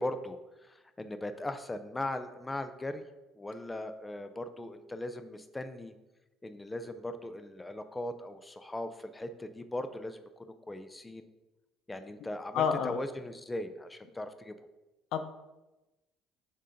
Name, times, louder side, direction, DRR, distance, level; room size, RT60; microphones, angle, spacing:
voice 1, 0.0-3.0 3.4-5.9 6.4-11.3 11.9-14.5, left 1 dB, 15° left, 10 dB, 0.5 m, -39 dB
voice 2, 12.5-13.0 15.1-15.2, left 7 dB, 70° left, 8 dB, 0.5 m, -28 dB
7.4 x 2.5 x 5.6 m, 1.0 s
supercardioid pair, 90°, 0 cm